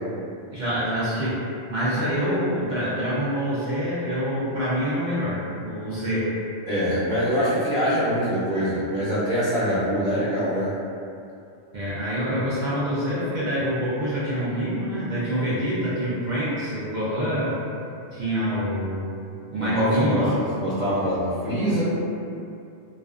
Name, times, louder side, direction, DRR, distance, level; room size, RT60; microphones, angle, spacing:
voice 1, 0.5-1.4 1.7-6.3 11.7-17.5 18.1-19.1 19.5-20.5, equal, 55° right, -10 dB, 0.5 m, -26 dB
voice 2, 6.7-10.7 19.6-20.2 20.5-21.8, equal, 5° right, -17 dB, 0.9 m, -24 dB
2.4 x 2.4 x 2.3 m, 2.6 s
omnidirectional pair, 1.3 m